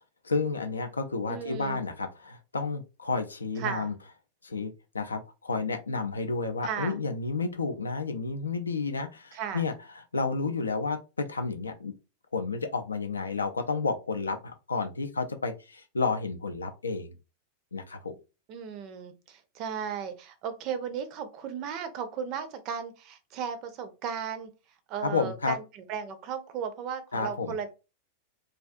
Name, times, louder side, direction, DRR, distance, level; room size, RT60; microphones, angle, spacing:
voice 1, 0.2-3.9 4.4-11.9 12.3-17.1 17.7-18.2 25.0-25.6 27.1-27.5, left 4 dB, 75° left, 7 dB, 0.3 m, -31 dB
voice 2, 1.3-1.8 3.6-3.9 6.6-7.0 9.3-9.6 18.5-24.5 24.9-27.7, right 7 dB, 40° right, 10 dB, 0.4 m, -35 dB
2.3 x 2.3 x 2.5 m, 0.29 s
figure-of-eight pair, 90°, 0 cm